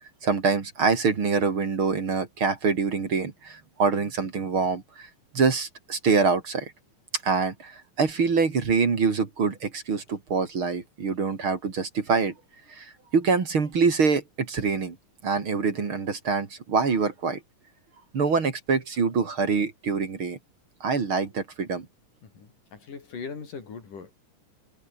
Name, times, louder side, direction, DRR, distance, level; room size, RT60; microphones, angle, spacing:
voice 1, 0.2-5.1 5.3-6.7 7.2-12.3 12.7-15.0 15.2-17.4 18.1-20.4 20.8-21.9, right 4 dB, 40° right, 3.3 m, -25 dB
voice 2, 22.2-24.1, left 5 dB, 85° left, 6.2 m, -40 dB
omnidirectional pair, 3.6 m